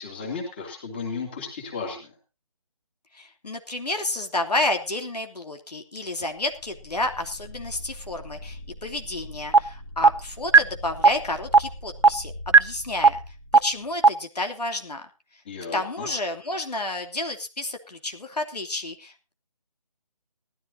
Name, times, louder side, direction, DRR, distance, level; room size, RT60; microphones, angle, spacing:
voice 1, 0.0-2.1 15.5-16.1, left 4 dB, 15° left, 2 dB, 2.8 m, -34 dB
voice 2, 3.1-13.2 13.6-15.0 15.7-19.3, left 2 dB, 90° left, 5 dB, 2.9 m, -30 dB
sound 1, 6.3-14.0, left 1 dB, 30° left, 2.3 m, -42 dB
sound 2, 9.5-9.6 10.0-10.1 10.5-10.6 11.0-11.1 11.5-11.6 12.0-12.1 12.5-12.6 13.0-13.1 13.5-13.6 14.0-14.1, right 4 dB, 50° right, 0.7 m, -11 dB
19.0 x 14.0 x 2.7 m, 0.30 s
figure-of-eight pair, 175°, 20 cm